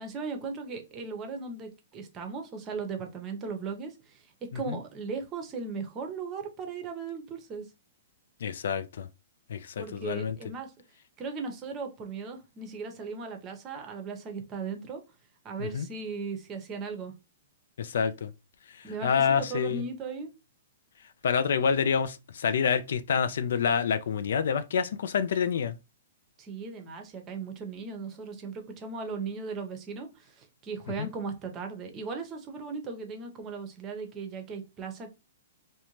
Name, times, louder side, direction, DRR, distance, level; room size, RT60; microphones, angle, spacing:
voice 1, 0.0-4.3 4.5-7.7 9.8-10.7 11.2-15.0 15.4-17.1 18.8-20.3 26.4-35.1, right 4 dB, 25° right, 0.7 m, -37 dB
voice 2, 8.4-9.1 9.5-10.4 15.6-15.9 17.8-18.3 19.0-19.8 21.2-25.8 31.0-31.1, left 7 dB, 70° left, 0.3 m, -27 dB
2.5 x 2.2 x 2.9 m
hypercardioid pair, 140°, 0 cm